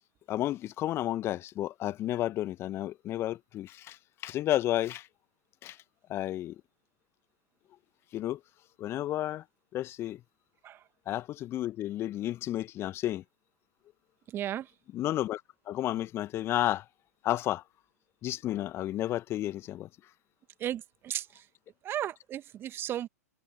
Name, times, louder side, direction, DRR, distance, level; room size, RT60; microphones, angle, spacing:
voice 1, 0.3-5.1 5.6-5.8 6.1-6.6 8.1-8.4 8.8-9.4 9.7-10.2 11.1-13.2 14.9-15.4 15.7-16.8 17.2-17.6 18.2-19.9, left 13 dB, 30° left, 1.2 m, -31 dB
voice 2, 14.3-14.7 20.6-21.3 21.8-23.1, right 11 dB, 25° right, 1.8 m, -34 dB
figure-of-eight pair, 100°, 9 cm